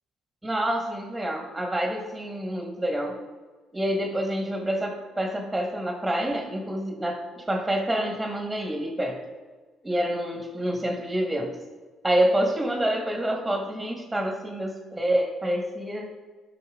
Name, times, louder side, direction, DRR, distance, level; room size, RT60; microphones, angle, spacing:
voice 1, 0.4-3.2 3.7-9.2 9.8-11.6 12.0-16.1, right 1 dB, 10° right, 1 dB, 2.0 m, -27 dB
12.5 x 5.8 x 3.9 m, 1.4 s
supercardioid pair, 70°, 0 cm